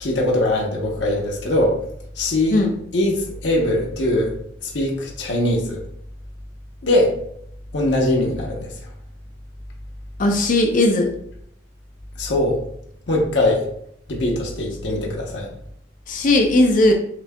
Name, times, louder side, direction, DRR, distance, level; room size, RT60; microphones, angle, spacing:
voice 1, 0.0-1.8 2.2-2.6 2.9-4.3 4.7-5.8 6.8-7.1 7.7-8.7 12.2-12.6 13.1-13.6 14.1-15.5, left 1 dB, 70° left, -1 dB, 0.8 m, -21 dB
voice 2, 10.2-11.1 16.1-16.9, left 2 dB, 45° left, 3 dB, 0.4 m, -17 dB
5.9 x 2.7 x 2.2 m, 0.69 s
head